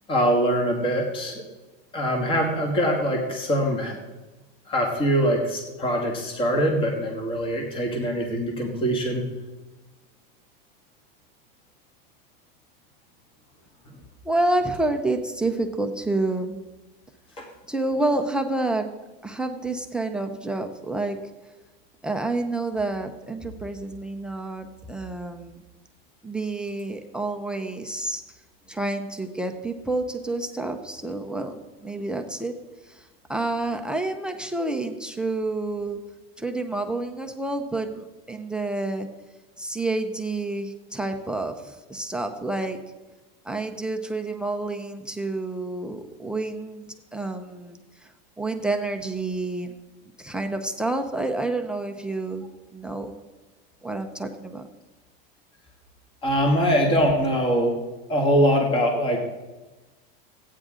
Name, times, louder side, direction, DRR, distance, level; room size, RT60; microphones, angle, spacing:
voice 1, 0.1-1.4 1.9-4.0 4.7-9.2 17.4-17.5 18.0-18.1 56.2-57.7 58.1-59.2, equal, 20° left, 2 dB, 1.5 m, -23 dB
voice 2, 14.2-16.6 17.7-18.9 19.2-21.2 22.0-25.6 26.2-28.2 28.7-32.6 32.9-36.0 36.4-39.1 39.6-42.8 43.4-46.9 47.1-48.1 48.4-49.7 50.2-52.5 52.7-53.2 53.8-54.7, right 2 dB, 5° right, 4 dB, 0.4 m, -29 dB
15.0 x 9.0 x 3.6 m, 1.2 s
supercardioid pair, 155°, 29 cm